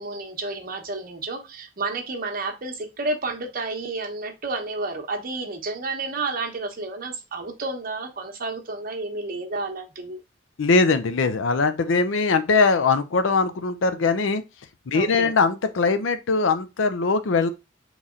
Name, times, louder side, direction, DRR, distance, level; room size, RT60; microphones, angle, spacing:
voice 1, 0.0-10.2 14.9-15.3, right 3 dB, 50° right, 0.9 m, -31 dB
voice 2, 10.6-14.4 14.9-17.5, left 4 dB, 80° left, 0.5 m, -21 dB
4.0 x 3.1 x 3.7 m
head